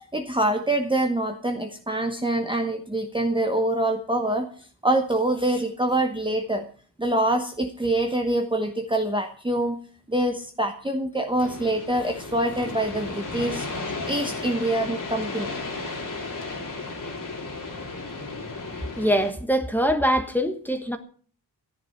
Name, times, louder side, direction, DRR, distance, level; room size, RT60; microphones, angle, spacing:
voice 1, 0.1-4.5 4.8-6.6 7.0-9.8 10.1-13.7 14.0-15.6, right 1 dB, 10° right, 1.0 m, -25 dB
sound 1, 11.4-19.3, left 3 dB, 50° left, 2.6 m, -34 dB
voice 2, 19.0-21.0, equal, 5° left, 1.3 m, -23 dB
13.5 x 10.5 x 5.9 m
wide cardioid pair, 165°, 41 cm